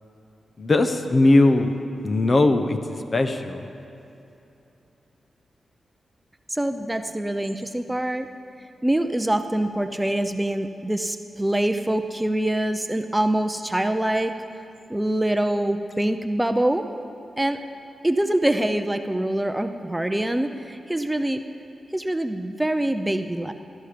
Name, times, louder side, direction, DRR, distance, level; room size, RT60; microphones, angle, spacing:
voice 1, 0.6-1.7 2.0-3.7, left 2 dB, 40° left, 7 dB, 1.0 m, -19 dB
voice 2, 6.5-8.3 8.8-14.3 14.9-16.9 17.4-17.6 18.0-21.4 21.9-23.5, right 1 dB, 10° right, 8 dB, 0.7 m, -24 dB
17.5 x 12.5 x 5.1 m, 2.9 s
cardioid pair, 70°, 0 cm